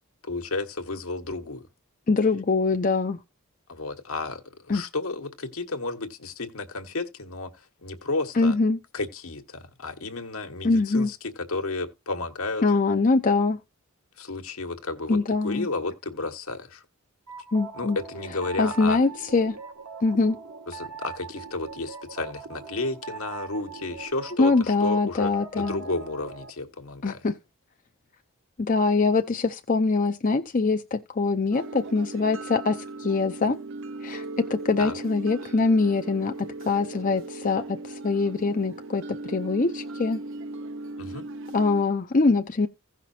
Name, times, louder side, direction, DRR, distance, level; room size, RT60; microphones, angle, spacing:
voice 1, 0.2-1.6 3.7-7.5 7.8-8.5 8.9-11.2 11.5-12.6 14.2-16.8 17.7-19.0 20.7-27.2 34.8-34.9 41.0-41.2, left 3 dB, 70° left, 1.5 m, -32 dB
voice 2, 2.1-3.2 4.7-4.8 8.3-8.8 10.6-11.1 12.6-13.6 15.1-15.7 17.5-18.0 18.6-19.6 20.0-20.4 24.4-25.8 27.0-27.3 28.6-33.6 34.0-34.2 34.5-40.2 41.5-42.7, left 3 dB, 35° left, 0.6 m, -23 dB
sound 1, 17.3-26.5, right 5 dB, 75° right, 1.7 m, -41 dB
sound 2, 31.5-41.8, right 2 dB, 60° right, 0.6 m, -38 dB
16.5 x 5.8 x 2.8 m
head